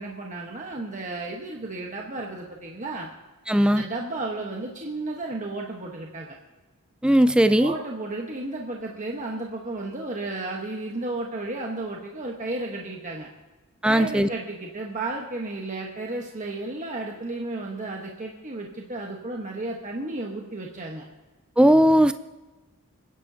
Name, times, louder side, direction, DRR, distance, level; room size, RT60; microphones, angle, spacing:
voice 1, 0.0-3.1 3.6-6.4 7.6-13.3 13.8-21.0, right 2 dB, 35° right, -1 dB, 1.2 m, -33 dB
voice 2, 3.5-3.8 7.0-7.7 13.8-14.3 21.6-22.1, equal, 5° right, 11 dB, 0.3 m, -18 dB
29.5 x 10.5 x 2.8 m, 1.2 s
head